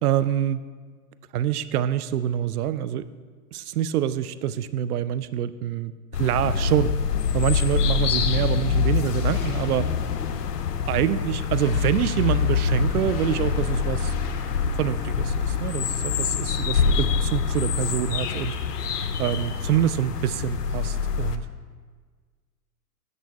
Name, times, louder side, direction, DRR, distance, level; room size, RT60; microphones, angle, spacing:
voice 1, 0.0-0.6 1.3-3.1 3.5-5.9 6.2-6.9 7.3-9.9 10.9-14.1 14.8-18.5 19.2-21.4, right 11 dB, 70° right, 15 dB, 0.6 m, -26 dB
sound 1, 6.1-21.4, left 6 dB, 85° left, 0.8 m, -25 dB
sound 2, 8.9-14.9, left 6 dB, 55° left, 1.3 m, -46 dB
11.0 x 7.6 x 3.6 m, 1.5 s
hypercardioid pair, 120°, 46 cm